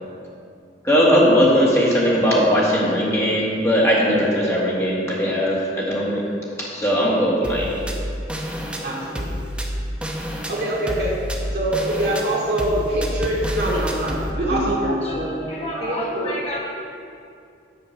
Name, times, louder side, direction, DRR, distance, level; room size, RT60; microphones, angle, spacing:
voice 1, 0.8-6.2 6.6-7.8, equal, 15° left, -6 dB, 2.0 m, -19 dB
sound 1, 7.4-14.3, equal, 5° right, 0.8 m, -29 dB
voice 2, 8.8-9.4 10.5-15.5 15.8-16.4, right 1 dB, 65° right, -5 dB, 2.2 m, -24 dB
voice 3, 14.5-15.2 15.5-16.6, left 1 dB, 35° left, -4 dB, 1.3 m, -28 dB
8.5 x 5.1 x 7.3 m, 2.5 s
head